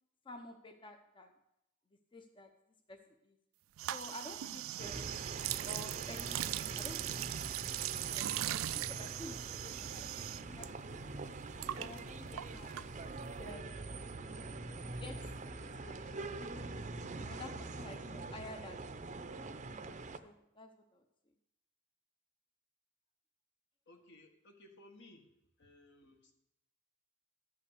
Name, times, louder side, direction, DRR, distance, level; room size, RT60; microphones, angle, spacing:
voice 1, 0.3-1.3 2.1-2.5 2.9-3.4 3.9-5.0 5.6-6.4 6.8-7.3 8.1-10.9 11.8-12.7 13.4-13.9 15.0-16.7 17.2-18.8 19.1-19.5 19.9-21.0, left 2 dB, 25° left, 5 dB, 0.7 m, -51 dB
sound 1, 3.8-10.7 10.9-13.3, right 14 dB, 80° right, 0.3 m, -40 dB
sound 2, 4.8-20.2, right 3 dB, 35° right, 0.6 m, -44 dB
voice 2, 23.8-25.3 25.6-26.3, left 1 dB, 60° left, 4 dB, 1.6 m, -59 dB
12.5 x 5.7 x 8.1 m, 0.83 s
head